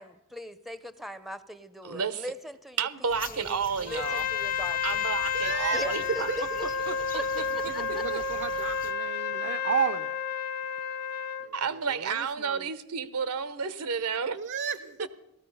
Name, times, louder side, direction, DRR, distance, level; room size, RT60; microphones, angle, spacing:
voice 1, 0.0-2.8 3.3-5.0 5.7-6.4 7.1-7.3 7.5-8.0, equal, ahead, 13 dB, 0.6 m, -39 dB
voice 2, 1.8-2.2 2.8-4.2 4.8-6.3 6.9-7.0 8.1-8.2 8.5-8.6 11.5-14.4, right 6 dB, 90° right, 14 dB, 0.9 m, -31 dB
sound 1, 3.1-8.9, left 5 dB, 40° left, 0.8 m, -47 dB
Trumpet, 3.9-11.5, left 6 dB, 90° left, 0.7 m, -31 dB
voice 3, 5.3-6.4 7.6-10.2 11.4-12.7 14.3-15.1, right 7 dB, 55° right, 9 dB, 0.5 m, -33 dB
17.5 x 14.0 x 5.5 m, 0.89 s
head